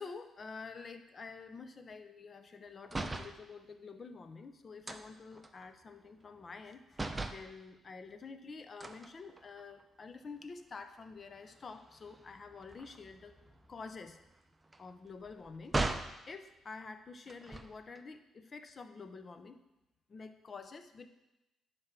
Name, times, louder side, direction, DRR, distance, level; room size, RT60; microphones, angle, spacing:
voice 1, 0.0-13.4 13.7-14.2 14.8-15.8 16.3-19.6 20.1-21.1, left 4 dB, 40° left, 9 dB, 0.7 m, -48 dB
sound 1, 2.8-3.4 4.9-6.7 6.9-7.5 8.8-9.8 10.3-10.5 10.8-16.2 17.3-18.0, right 2 dB, 20° right, 0.5 m, -41 dB
9.8 x 3.4 x 5.8 m, 0.96 s
cardioid pair, 90°, 0 cm